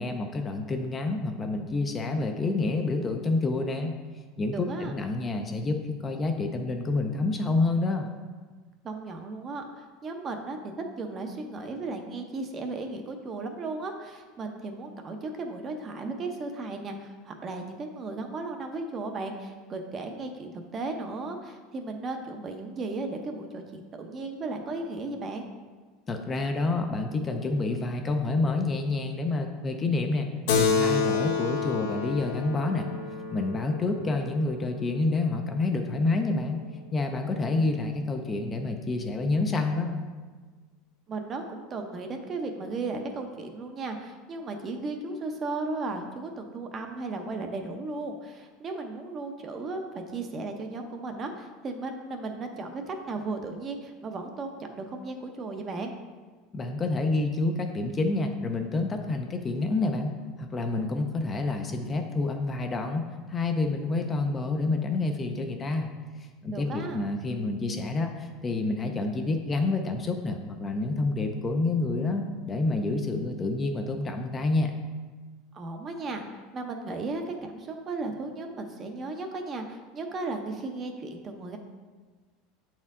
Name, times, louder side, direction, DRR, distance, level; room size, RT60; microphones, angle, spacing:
voice 1, 0.0-4.0 4.4-8.1 26.1-32.9 33.3-36.6 36.9-40.0 56.5-60.1 60.4-65.9 66.2-74.7, left 3 dB, 20° left, 4 dB, 0.4 m, -28 dB
voice 2, 4.5-5.0 8.8-25.5 41.1-55.9 66.5-67.0 75.5-81.6, right 3 dB, 25° right, 5 dB, 0.6 m, -35 dB
Keyboard (musical), 30.5-35.4, left 5 dB, 70° left, 0.7 m, -29 dB
7.9 x 4.4 x 3.6 m, 1.4 s
supercardioid pair, 155°, 0 cm